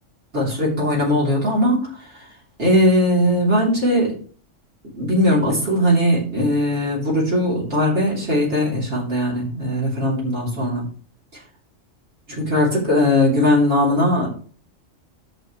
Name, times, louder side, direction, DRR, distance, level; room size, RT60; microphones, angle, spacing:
voice 1, 0.3-1.9 2.6-4.1 5.0-10.8 12.3-14.3, left 1 dB, 65° right, -5 dB, 3.9 m, -19 dB
11.0 x 7.6 x 3.2 m, 0.43 s
omnidirectional pair, 1.3 m